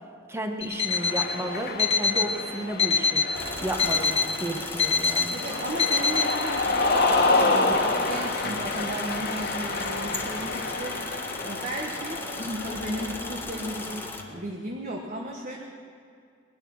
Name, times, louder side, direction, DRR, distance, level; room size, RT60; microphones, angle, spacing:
voice 1, 0.3-3.3 3.6-5.4, right 1 dB, 15° right, 4 dB, 1.2 m, -33 dB
Alarm, 0.6-1.3 1.8-2.3 2.8-3.3 3.8-4.3 4.8-5.3 5.8-6.3, left 5 dB, 35° left, 1.3 m, -24 dB
Cheering, 0.8-14.2, left 3 dB, 55° left, 1.3 m, -29 dB
sound 1, 3.3-14.2, left 2 dB, 10° left, 1.1 m, -37 dB
voice 2, 5.3-11.2 11.4-15.6, right 1 dB, 45° right, -1 dB, 1.4 m, -35 dB
20.5 x 11.0 x 6.4 m, 2.3 s
head